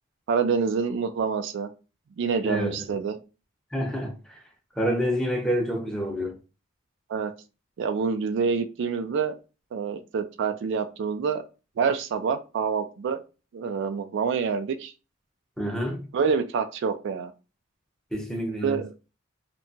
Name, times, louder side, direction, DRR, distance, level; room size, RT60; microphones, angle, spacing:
voice 1, 0.3-1.7 2.2-3.2 7.1-7.3 7.8-9.4 9.7-11.4 11.8-13.2 13.5-14.9 16.1-17.3 18.6-18.9, right 5 dB, 65° right, 0.3 m, -27 dB
voice 2, 2.4-3.0 3.7-4.4 4.8-6.3 15.6-16.0 18.1-18.8, equal, 5° left, 0.6 m, -28 dB
2.7 x 2.2 x 2.6 m
head